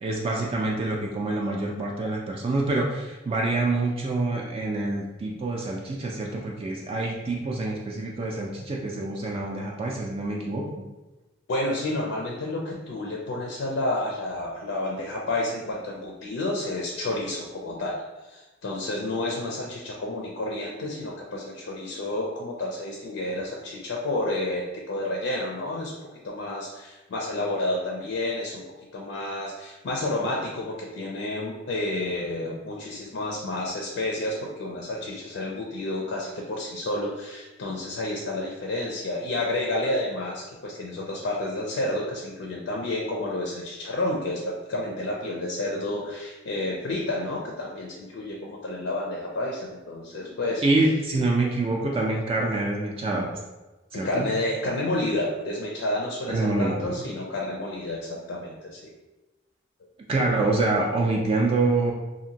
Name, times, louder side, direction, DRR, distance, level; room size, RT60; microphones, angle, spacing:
voice 1, 0.0-10.7 50.6-53.4 53.9-54.3 56.3-57.0 60.1-61.9, right 2 dB, 30° right, -2 dB, 0.3 m, -26 dB
voice 2, 11.5-18.0 18.3-25.9 26.2-28.6 28.9-50.6 53.9-58.8, left 1 dB, 85° left, -1 dB, 0.5 m, -30 dB
2.8 x 2.5 x 2.8 m, 1.1 s
head